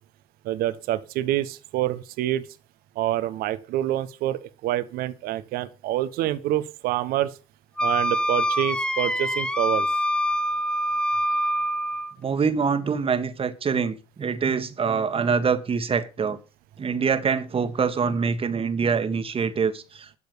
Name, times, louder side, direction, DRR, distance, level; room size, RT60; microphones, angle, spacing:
voice 1, 0.4-2.4 2.9-7.3 7.8-9.9, right 13 dB, 60° right, 1.2 m, -27 dB
Wind instrument woodwind instrument, 7.8-12.1, equal, 5° left, 0.8 m, -25 dB
voice 2, 12.2-16.4 16.8-20.2, right 5 dB, 35° right, 1.8 m, -25 dB
12.5 x 6.8 x 6.9 m
hypercardioid pair, 65°, 17 cm